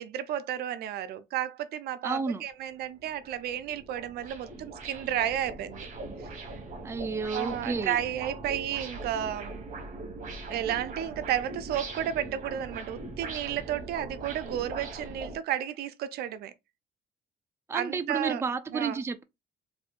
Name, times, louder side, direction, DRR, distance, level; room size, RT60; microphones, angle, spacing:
voice 1, 0.0-5.9 7.3-9.6 10.5-16.5 17.7-18.4 18.7-19.0, right 11 dB, 70° right, 0.5 m, -32 dB
voice 2, 2.0-2.4 6.8-8.0 17.7-19.2, right 4 dB, 15° right, 0.4 m, -31 dB
sound 1, 2.5-2.6 3.0-15.4, right 2 dB, 50° right, 1.2 m, -41 dB
4.3 x 2.6 x 2.4 m
cardioid pair, 110°, 17 cm